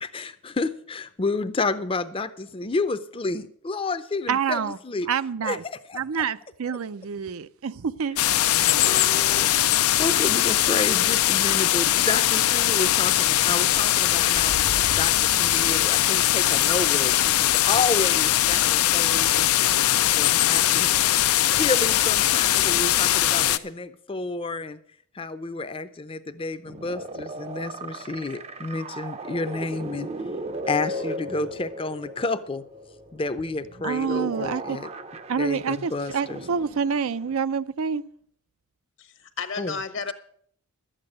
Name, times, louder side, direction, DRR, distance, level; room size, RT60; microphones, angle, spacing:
voice 1, 0.0-5.1 5.4-6.0 8.8-14.6 15.0-19.5 20.1-21.0 21.6-24.8 25.1-30.1 30.7-32.6 33.1-34.9 35.4-36.4 39.6-39.8, left 3 dB, 25° left, 0.5 m, -30 dB
voice 2, 4.3-4.8 5.1-5.6 5.9-8.2 33.8-34.8 35.3-38.0, right 6 dB, 75° right, 0.5 m, -27 dB
sound 1, 8.2-23.6, left 13 dB, 90° left, 0.5 m, -21 dB
sound 2, 26.7-37.4, right 1 dB, 30° right, 0.5 m, -37 dB
voice 3, 39.0-40.1, left 5 dB, 60° left, 1.0 m, -32 dB
12.5 x 8.9 x 6.6 m
head